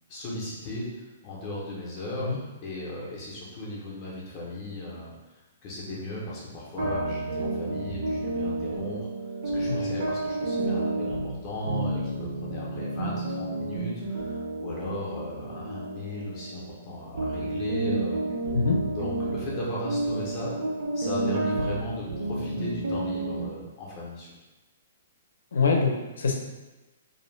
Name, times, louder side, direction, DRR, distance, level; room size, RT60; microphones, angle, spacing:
voice 1, 0.1-9.1 9.5-18.3 19.0-20.5 20.9-24.3, left 1 dB, 25° left, -5 dB, 0.5 m, -36 dB
sound 1, 6.8-16.9 17.1-23.5, right 2 dB, 65° right, 0.6 m, -30 dB
voice 2, 25.5-26.3, left 4 dB, 80° left, 2 dB, 0.5 m, -24 dB
2.5 x 2.0 x 3.0 m, 1.1 s
hypercardioid pair, 175°, 0 cm